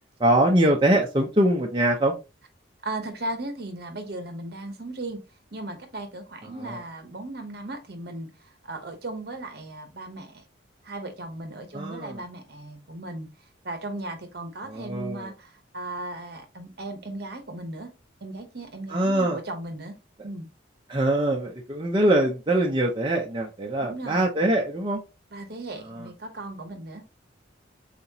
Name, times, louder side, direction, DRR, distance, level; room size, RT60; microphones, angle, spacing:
voice 1, 0.2-2.1 6.6-6.8 11.7-12.2 14.6-15.3 18.9-19.4 20.9-25.0 25.9-26.1, right 1 dB, 25° right, 0.6 m, -23 dB
voice 2, 2.8-5.2 5.5-10.4 10.8-13.3 13.6-17.9 18.2-20.0 20.2-20.5 23.8-24.3 25.3-27.0, right 2 dB, 55° right, 1.0 m, -36 dB
4.1 x 4.0 x 2.9 m
head